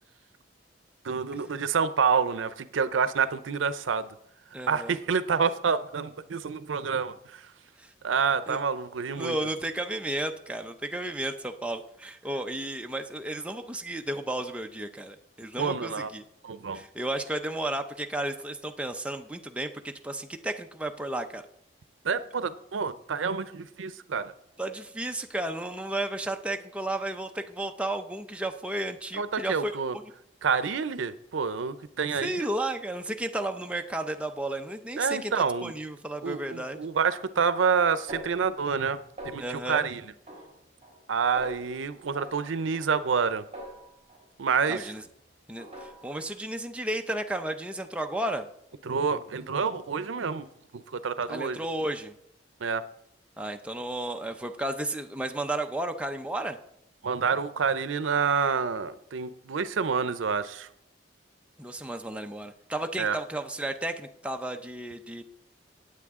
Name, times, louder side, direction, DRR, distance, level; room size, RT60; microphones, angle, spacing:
voice 1, 1.0-4.1 4.7-7.5 8.0-9.4 15.6-16.1 16.4-16.8 22.0-24.3 29.2-30.0 30.4-32.5 35.0-35.7 36.2-39.0 39.2-40.0 41.1-43.4 44.4-44.9 48.9-50.5 50.7-51.6 52.6-52.8 57.0-60.7 63.0-63.2, right 5 dB, 90° right, 14 dB, 0.6 m, -28 dB
voice 2, 4.5-4.9 7.8-7.9 8.5-8.6 9.2-16.2 16.7-21.4 24.6-30.0 32.2-36.9 39.4-39.9 44.7-45.0 45.5-48.5 51.3-52.1 53.4-56.6 61.6-65.2, right 1 dB, 5° right, 4 dB, 0.6 m, -33 dB
Snare drum, 38.1-38.9 39.2-39.7 40.3-41.0 41.4-41.7 42.2-44.3 44.6-45.1 45.6-46.3, right 1 dB, 35° right, 3.0 m, -45 dB
18.0 x 7.8 x 3.6 m, 0.78 s
head